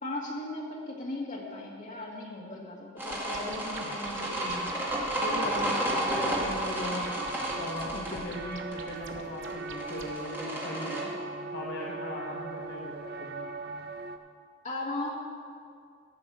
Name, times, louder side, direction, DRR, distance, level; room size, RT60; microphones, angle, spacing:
voice 1, 0.0-4.6 14.6-15.1, left 2 dB, 40° left, -2 dB, 1.9 m, -37 dB
sound 1, 3.0-11.0, right 1 dB, 10° right, 2.1 m, -32 dB
sound 2, 3.1-10.1, right 3 dB, 70° right, 1.0 m, -46 dB
voice 2, 4.0-4.6 5.2-7.1 7.6-11.1 11.5-13.5, left 1 dB, 55° left, -3 dB, 1.0 m, -38 dB
sound 3, 5.5-14.2, right 3 dB, 50° right, 0.7 m, -40 dB
13.5 x 5.4 x 7.7 m, 2.2 s
head